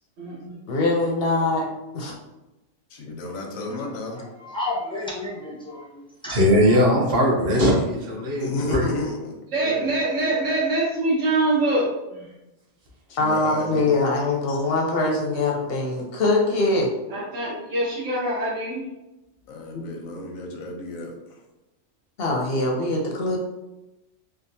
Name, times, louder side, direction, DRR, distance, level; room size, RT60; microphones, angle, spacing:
voice 1, 0.2-0.6 9.5-12.3 17.1-18.8, right 2 dB, 75° right, -7 dB, 1.1 m, -24 dB
voice 2, 0.7-1.7 1.9-2.1 13.2-16.9 19.7-19.8 22.2-23.4, left 2 dB, 65° left, 0 dB, 0.6 m, -23 dB
voice 3, 2.9-4.2 5.9-6.0 8.4-9.9 13.1-13.9 19.5-21.4, left 2 dB, 90° left, 1 dB, 1.1 m, -32 dB
voice 4, 4.1-5.9 6.2-6.4 6.7-6.8, left 2 dB, 5° left, -6 dB, 0.4 m, -32 dB
voice 5, 6.3-8.9, equal, 50° right, -4 dB, 1.0 m, -20 dB
3.5 x 2.2 x 2.6 m, 0.98 s
omnidirectional pair, 1.4 m